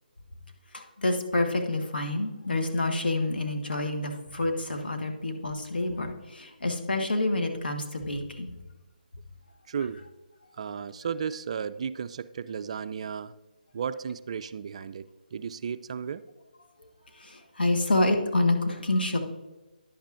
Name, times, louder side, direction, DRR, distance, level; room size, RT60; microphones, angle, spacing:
voice 1, 0.7-8.5 16.8-16.9 17.2-19.2, left 2 dB, 85° left, 3 dB, 1.5 m, -28 dB
voice 2, 9.7-10.0 10.6-13.3 13.7-16.2, right 7 dB, 40° right, 14 dB, 0.3 m, -34 dB
10.5 x 8.6 x 2.5 m, 1.1 s
figure-of-eight pair, 155°, 5 cm